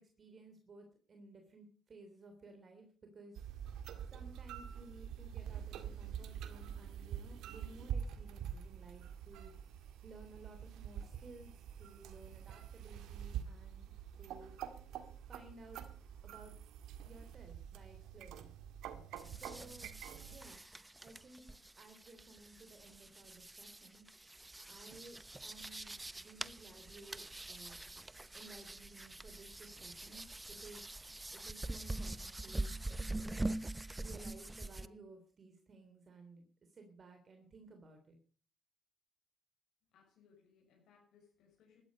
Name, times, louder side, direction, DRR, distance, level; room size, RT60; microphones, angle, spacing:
voice 1, 0.0-2.9 3.1-3.4 4.1-9.5 10.0-13.9 14.2-14.6 15.3-15.8 16.2-16.5 17.0-18.5 19.4-19.9 20.2-20.6 21.0-24.1 24.7-27.8 28.3-31.0 31.3-32.7 33.1-33.5 34.0-38.2, right 3 dB, 45° right, 5 dB, 3.5 m, -57 dB
sound 1, 3.4-20.6, right 9 dB, 90° right, 1.8 m, -46 dB
sound 2, 19.2-34.9, right 2 dB, 15° right, 0.8 m, -44 dB
voice 2, 39.9-41.8, left 6 dB, 85° left, -3 dB, 6.5 m, -67 dB
16.5 x 12.5 x 5.3 m, 0.42 s
cardioid pair, 90°, 0 cm